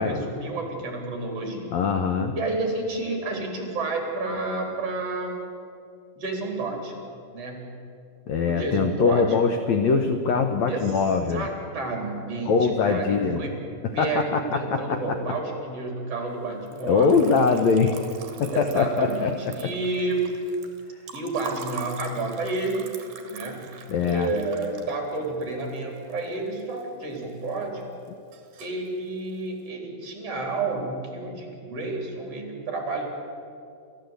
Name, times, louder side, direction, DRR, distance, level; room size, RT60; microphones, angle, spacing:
voice 1, 0.0-1.7 2.4-5.4 6.2-6.9 7.3-7.7 8.4-9.4 10.7-10.9 11.3-13.6 13.9-17.2 18.1-20.2 21.1-22.9 23.3-23.6 24.0-27.9 28.6-33.1, right 3 dB, 40° right, 1 dB, 4.5 m, -30 dB
voice 2, 1.7-2.3 8.3-11.5 12.4-13.4 14.0-15.0 16.8-18.0 18.4-19.3 19.6-19.7 23.9-24.3, left 5 dB, 75° left, 6 dB, 1.6 m, -22 dB
Liquid, 16.6-26.8 27.2-27.8 28.1-28.9, right 6 dB, 60° right, 3.3 m, -43 dB
29.0 x 15.0 x 8.3 m, 2.4 s
omnidirectional pair, 4.7 m